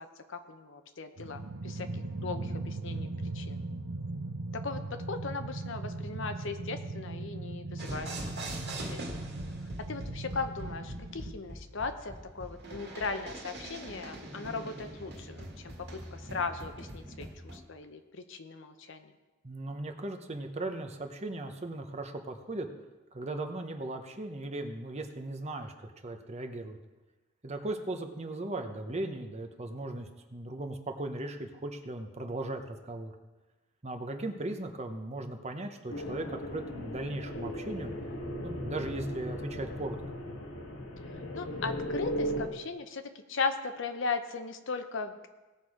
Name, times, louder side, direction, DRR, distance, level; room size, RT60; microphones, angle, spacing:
voice 1, 0.0-3.1 3.3-3.6 4.5-8.1 8.4-9.1 9.9-19.1 41.1-45.3, left 4 dB, 65° left, 8 dB, 0.8 m, -38 dB
sound 1, 1.2-11.3, right 2 dB, 80° right, 0.8 m, -39 dB
sound 2, 7.8-17.6, right 1 dB, 55° right, 1.9 m, -43 dB
voice 2, 19.4-22.7 23.1-26.8 27.4-33.1 33.8-37.9 38.4-40.0, right 2 dB, 30° right, 5 dB, 0.9 m, -37 dB
sound 3, 35.9-42.5, equal, 80° left, 1.5 m, -37 dB
17.5 x 6.2 x 4.9 m, 1.2 s
head